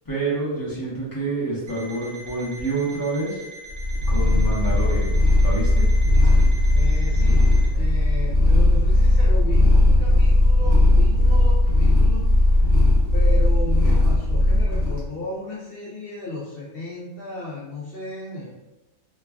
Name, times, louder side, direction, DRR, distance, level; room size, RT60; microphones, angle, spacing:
voice 1, 0.0-3.4 4.1-5.1 5.4-5.9, right 2 dB, 25° left, -7 dB, 0.5 m, -27 dB
Alarm, 1.7-7.7, right 1 dB, 85° right, 0.3 m, -42 dB
Purr, 3.7-15.0, left 1 dB, 45° right, 1.1 m, -17 dB
voice 2, 6.7-12.3 13.1-18.5, left 2 dB, 70° left, -6 dB, 0.5 m, -35 dB
3.0 x 2.3 x 2.2 m, 1.0 s
omnidirectional pair, 1.5 m